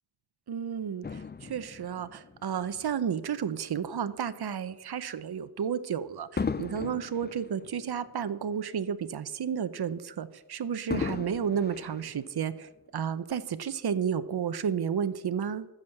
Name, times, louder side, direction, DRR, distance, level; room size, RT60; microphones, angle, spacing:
voice 1, 0.5-15.7, right 7 dB, 70° right, 12 dB, 0.7 m, -32 dB
Fireworks, 1.0-3.6 4.3-4.5 6.4-8.9 9.2-9.3 10.9-12.8 13.5-13.6, left 5 dB, 25° left, 0.4 m, -38 dB
14.0 x 7.3 x 6.5 m, 0.99 s
wide cardioid pair, 95°, 40 cm